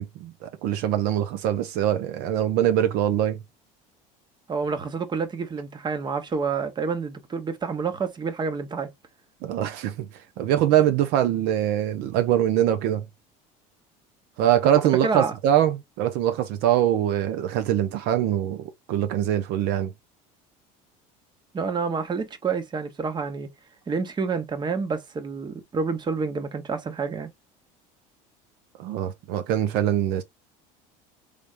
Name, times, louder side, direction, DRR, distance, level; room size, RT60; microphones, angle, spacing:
voice 1, 0.0-3.4 9.4-10.1 10.4-13.1 14.4-19.9 28.8-30.2, right 11 dB, 70° right, 0.6 m, -23 dB
voice 2, 4.5-8.9 15.0-15.3 21.5-23.5 23.9-27.3, right 5 dB, 25° right, 1.0 m, -28 dB
3.4 x 3.3 x 2.5 m
supercardioid pair, 110°, 17 cm